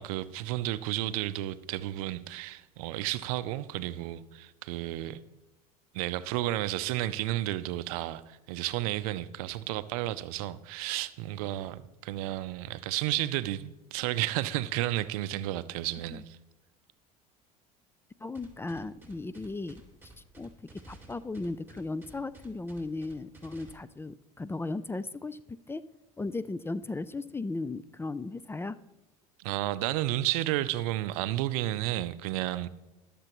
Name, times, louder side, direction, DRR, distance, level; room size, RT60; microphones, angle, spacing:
voice 1, 0.0-5.2 5.9-16.4 29.4-32.7, right 15 dB, 70° right, 0.5 m, -32 dB
voice 2, 18.2-25.8 26.2-28.8, left 3 dB, 10° left, 0.4 m, -36 dB
sound 1, 18.3-23.7, right 3 dB, 10° right, 2.4 m, -52 dB
19.0 x 6.8 x 3.0 m
hypercardioid pair, 75°, 19 cm